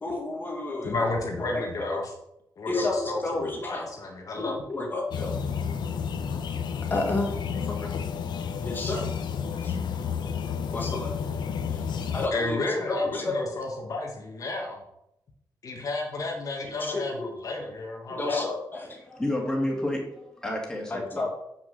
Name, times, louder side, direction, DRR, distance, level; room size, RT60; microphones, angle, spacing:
voice 1, 0.0-0.9 1.9-2.0 2.7-3.9 4.4-5.3 6.9-7.3 8.6-9.0 9.6-9.7 10.7-11.1 12.1-12.6 12.9-13.5 16.8-17.2 18.1-18.8 20.9-21.3, left 2 dB, 25° left, 2 dB, 2.0 m, -30 dB
voice 2, 0.8-2.1 2.6-4.6 12.3-14.8 15.6-18.4, left 2 dB, 45° left, 0 dB, 1.4 m, -32 dB
sound 1, 5.1-12.3, left 6 dB, 70° left, 1.0 m, -31 dB
voice 3, 18.7-21.2, left 1 dB, 5° left, -1 dB, 2.2 m, -31 dB
7.2 x 6.4 x 7.4 m, 0.81 s
wide cardioid pair, 170°, 8 cm